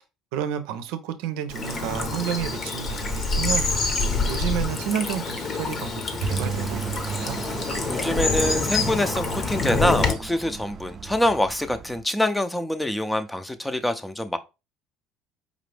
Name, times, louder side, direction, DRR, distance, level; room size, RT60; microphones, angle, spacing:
voice 1, 0.3-3.7 4.3-7.4, right 9 dB, 80° right, 0.6 m, -30 dB
Bird vocalization bird call bird song / Stream, 1.5-10.1, left 3 dB, 45° left, 0.9 m, -26 dB
sound 1, 6.2-12.0, right 5 dB, 40° right, 0.5 m, -34 dB
voice 2, 7.9-14.4, left 1 dB, 5° left, 0.6 m, -25 dB
5.0 x 2.6 x 3.3 m
supercardioid pair, 95°, 0 cm